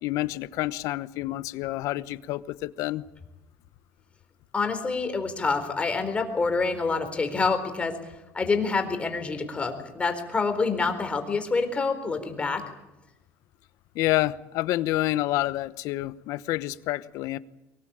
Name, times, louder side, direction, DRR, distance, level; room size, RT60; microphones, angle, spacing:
voice 1, 0.0-3.0 13.9-17.4, left 16 dB, 75° left, 15 dB, 0.9 m, -28 dB
voice 2, 4.5-12.6, left 4 dB, 20° left, 6 dB, 4.1 m, -27 dB
23.5 x 20.0 x 8.8 m, 1.0 s
cardioid pair, 125°, 6 cm